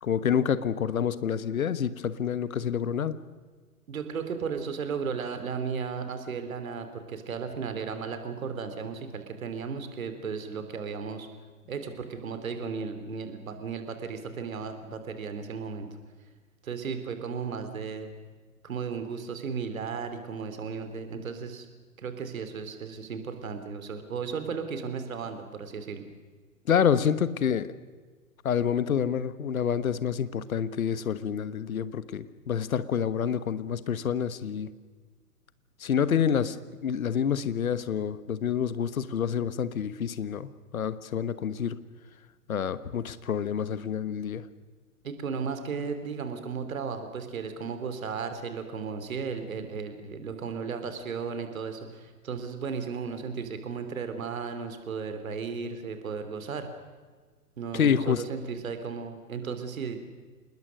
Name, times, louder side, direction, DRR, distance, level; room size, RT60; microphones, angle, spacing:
voice 1, 0.0-3.2 26.7-27.7 28.4-34.7 35.8-36.6 36.8-41.8 42.5-44.4 57.7-58.2, left 8 dB, 60° left, 15 dB, 1.3 m, -28 dB
voice 2, 3.9-11.3 11.7-15.9 16.6-18.1 18.6-21.6 22.0-26.1 45.0-56.7 57.6-60.0, right 5 dB, 60° right, 8 dB, 3.3 m, -35 dB
27.5 x 20.5 x 6.5 m, 1.4 s
figure-of-eight pair, 120°, 47 cm